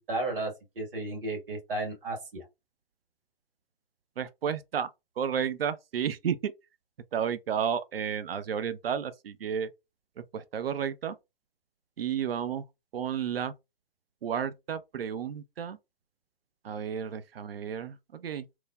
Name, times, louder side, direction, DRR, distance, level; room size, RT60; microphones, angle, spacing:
voice 1, 0.1-2.4, right 2 dB, 70° right, 1.6 m, -33 dB
voice 2, 4.2-4.9 5.2-6.5 7.1-9.7 10.2-11.2 12.0-12.6 12.9-13.5 14.2-15.8 16.6-18.5, right 8 dB, 85° right, 0.5 m, -32 dB
3.0 x 2.2 x 2.2 m
figure-of-eight pair, 125°, 29 cm